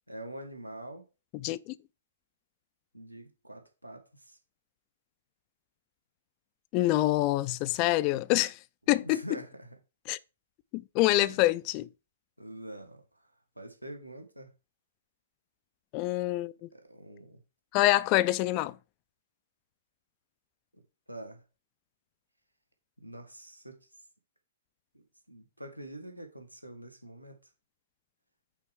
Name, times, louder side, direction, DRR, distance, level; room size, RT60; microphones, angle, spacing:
voice 1, 0.1-1.1 2.9-4.4 9.0-9.7 11.1-11.4 12.4-13.0 13.5-14.5 16.7-17.4 20.7-21.4 23.0-23.8 24.9-27.4, right 1 dB, 90° right, 1.6 m, -45 dB
voice 2, 1.4-1.7 6.7-8.6 8.9-9.2 10.1-10.2 10.7-11.9 15.9-16.7 17.7-18.8, left 17 dB, 30° left, 0.3 m, -26 dB
5.6 x 4.3 x 4.8 m
figure-of-eight pair, 115°, 0 cm